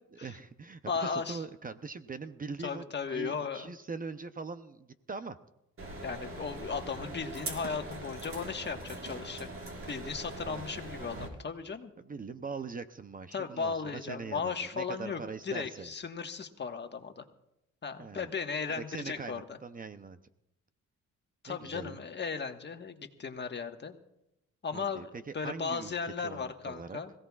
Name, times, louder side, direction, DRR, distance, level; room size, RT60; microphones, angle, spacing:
voice 1, 0.2-2.8 3.1-5.4 10.5-10.7 12.0-15.9 18.0-18.3 18.7-20.2 21.5-22.0 24.7-27.0, right 4 dB, 30° right, 10 dB, 0.7 m, -42 dB
voice 2, 0.9-1.4 2.6-3.7 6.0-9.5 9.9-11.9 13.3-17.2 17.8-19.6 21.4-24.0 24.6-27.1, left 5 dB, 35° left, 5 dB, 1.5 m, -36 dB
sound 1, 5.8-11.3, right 2 dB, 45° right, 4.2 m, -42 dB
26.0 x 16.5 x 2.4 m, 0.87 s
cardioid pair, 90°, 30 cm